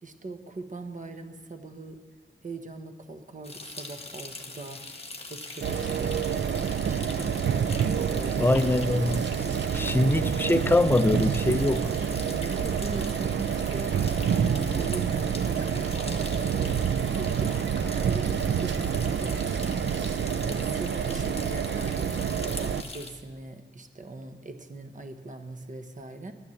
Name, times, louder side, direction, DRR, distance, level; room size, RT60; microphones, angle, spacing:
voice 1, 0.0-2.0 2.4-4.8 5.3-8.6 9.8-10.3 12.5-13.9 14.3-17.6 17.8-20.0 20.4-26.3, right 2 dB, 40° right, 1.1 m, -41 dB
sound 1, 3.4-23.1, left 3 dB, 30° left, 1.4 m, -42 dB
sound 2, 5.6-22.8, right 7 dB, 65° right, 0.5 m, -28 dB
Laughter, 8.1-21.1 21.3-21.4, right 1 dB, 85° right, 3.8 m, -48 dB
voice 2, 8.4-9.3 9.7-11.9, left 2 dB, 10° left, 0.5 m, -23 dB
10.5 x 9.5 x 7.1 m
wide cardioid pair, 95°, 20 cm